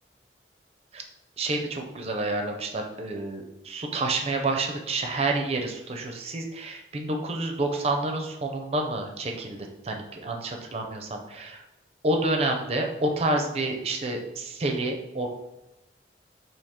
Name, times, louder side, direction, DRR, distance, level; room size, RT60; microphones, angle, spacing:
voice 1, 1.4-11.6 12.0-15.3, right 2 dB, 35° right, 3 dB, 0.5 m, -29 dB
3.6 x 2.7 x 4.2 m, 0.96 s
head